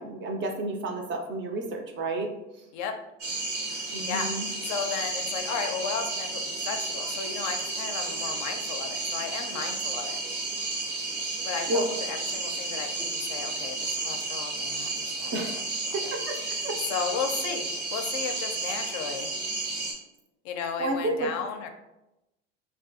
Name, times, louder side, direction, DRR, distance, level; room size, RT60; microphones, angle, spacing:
voice 1, 0.0-2.3 3.9-4.5 9.5-9.7 11.7-11.9 15.3-15.7 15.9-16.4 16.6-16.8 20.8-21.3, right 2 dB, 35° right, 3 dB, 0.4 m, -31 dB
sound 1, 3.2-19.9, right 2 dB, 85° right, 0.8 m, -32 dB
voice 2, 4.1-10.2 11.4-16.1 16.5-16.6 16.9-17.7 17.9-19.3 20.4-21.7, left 6 dB, 50° left, 5 dB, 0.4 m, -34 dB
2.6 x 2.3 x 2.5 m, 0.93 s
hypercardioid pair, 85°, 36 cm